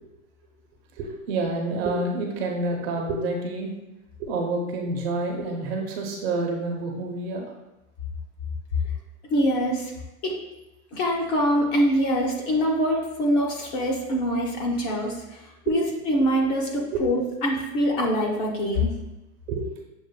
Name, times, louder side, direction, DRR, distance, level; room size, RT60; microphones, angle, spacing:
voice 1, 1.0-3.7 4.2-7.5 15.7-15.8 16.9-17.0 19.5-19.7, right 2 dB, 45° right, 1 dB, 0.9 m, -28 dB
voice 2, 9.3-9.9 10.2-10.4 10.9-18.9, equal, 30° left, -1 dB, 0.7 m, -24 dB
6.9 x 2.5 x 2.2 m, 1.0 s
hypercardioid pair, 130°, 44 cm